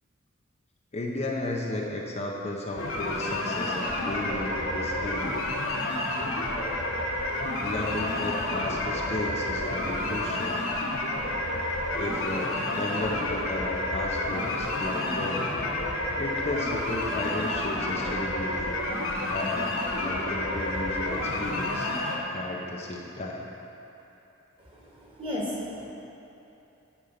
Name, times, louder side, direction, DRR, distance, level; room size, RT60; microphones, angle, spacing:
voice 1, 0.9-5.5 7.6-10.6 11.9-15.5 16.2-18.8 19.3-21.9 22.3-23.5, left 2 dB, 30° left, -1 dB, 0.7 m, -34 dB
sound 1, 2.8-22.2, left 1 dB, 70° left, 1.2 m, -30 dB
voice 2, 24.6-25.9, left 1 dB, 25° right, -5 dB, 1.8 m, -35 dB
9.9 x 5.3 x 5.7 m, 2.9 s
head